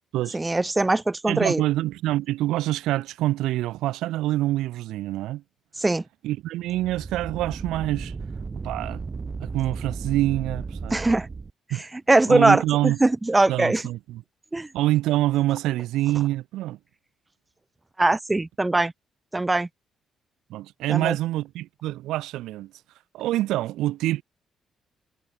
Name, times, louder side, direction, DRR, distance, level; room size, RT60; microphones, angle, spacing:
voice 1, 0.3-1.6 5.8-6.0 10.9-11.3 12.1-13.8 14.5-14.7 18.0-18.9 19.3-19.7 20.9-21.2, right 2 dB, 15° right, 0.7 m, -21 dB
voice 2, 1.3-5.4 6.2-8.1 8.6-9.0 9.4-11.0 11.7-11.8 12.3-13.0 13.5-14.2 14.7-16.8 20.5-22.7 23.1-24.2, right 15 dB, 90° right, 0.8 m, -26 dB
sound 1, 6.6-11.5, right 4 dB, 35° right, 3.5 m, -35 dB
cardioid pair, 90°, 0 cm